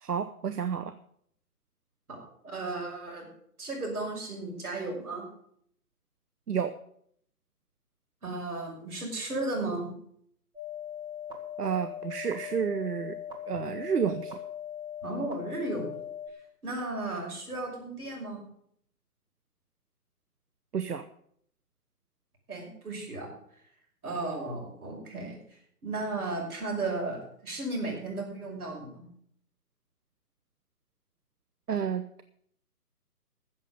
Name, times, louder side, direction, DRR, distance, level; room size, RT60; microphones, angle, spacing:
voice 1, 0.0-0.9 6.5-6.7 11.6-13.2 13.5-14.4 20.7-21.1 31.7-32.2, right 7 dB, 85° right, 10 dB, 0.9 m, -30 dB
voice 2, 2.1-3.3 3.6-5.3 8.2-9.9 15.0-15.9 16.6-18.4 22.5-23.3 24.0-25.4 25.8-29.1, right 2 dB, 70° right, 0 dB, 5.9 m, -34 dB
sound 1, 10.6-16.3, left 9 dB, 10° right, 1.4 m, -40 dB
14.0 x 7.5 x 6.7 m, 0.66 s
figure-of-eight pair, 145°, 46 cm